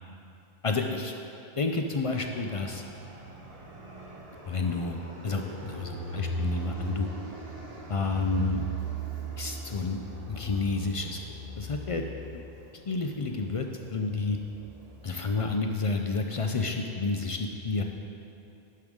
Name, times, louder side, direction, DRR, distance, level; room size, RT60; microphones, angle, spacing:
voice 1, 0.6-1.1 1.6-2.8 4.4-7.1 7.9-8.6 9.4-10.0 10.3-12.0 12.3-12.4 12.9-13.7 13.9-14.4 15.0-17.8, left 3 dB, 45° left, 3 dB, 0.4 m, -30 dB
Fixed-wing aircraft airplane, 2.0-15.5, right 2 dB, 40° right, 1.1 m, -39 dB
11.0 x 6.7 x 3.6 m, 2.7 s
omnidirectional pair, 1.0 m